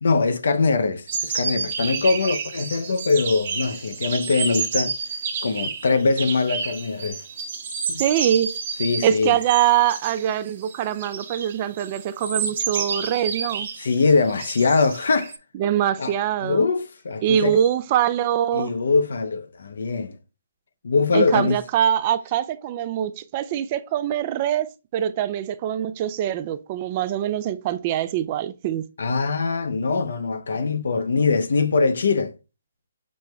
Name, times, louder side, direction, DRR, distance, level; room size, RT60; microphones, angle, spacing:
voice 1, 0.0-5.0 5.4-7.2 7.9-8.0 8.8-9.4 13.8-15.3 16.0-16.1 16.4-17.6 18.5-20.2 20.8-21.6 29.0-32.3, left 4 dB, 70° left, 0.7 m, -22 dB
sound 1, 1.1-15.4, right 5 dB, 50° right, 1.1 m, -30 dB
voice 2, 8.0-8.6 9.0-13.7 15.6-16.6 17.2-18.7 21.1-28.8, right 10 dB, 30° right, 0.4 m, -23 dB
6.3 x 2.2 x 3.1 m
hypercardioid pair, 150°, 0 cm